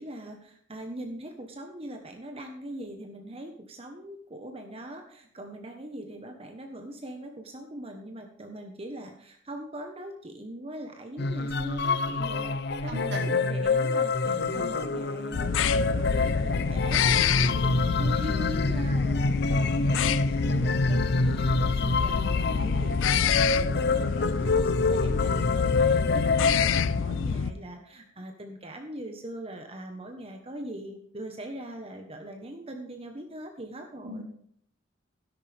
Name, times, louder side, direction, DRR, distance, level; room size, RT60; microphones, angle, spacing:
voice 1, 0.0-12.6 12.8-34.2, right 1 dB, 30° right, 4 dB, 1.3 m, -41 dB
sound 1, 11.2-27.2, left 3 dB, 60° left, 0.8 m, -27 dB
voice 2, 12.9-13.6 14.2-14.6 34.0-34.2, right 1 dB, 60° right, 0 dB, 2.7 m, -38 dB
sound 2, 15.3-27.5, left 6 dB, 85° left, 0.5 m, -27 dB
13.0 x 11.0 x 3.5 m, 0.63 s
head